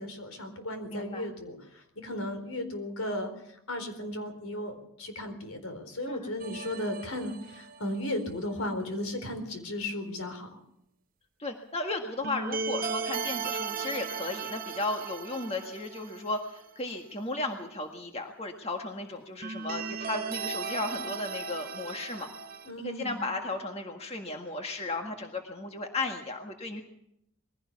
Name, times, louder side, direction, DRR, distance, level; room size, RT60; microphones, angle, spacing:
voice 1, 0.0-10.6 22.6-23.3, left 1 dB, 80° left, 7 dB, 4.2 m, -35 dB
voice 2, 0.9-1.3 6.1-6.3 11.4-22.3 22.8-26.8, left 2 dB, 30° left, 3 dB, 1.7 m, -35 dB
sound 1, 6.4-8.2 12.2-16.6 16.9-17.0 19.4-22.7, right 5 dB, 40° right, 1.0 m, -36 dB
22.0 x 16.5 x 7.2 m, 0.78 s
head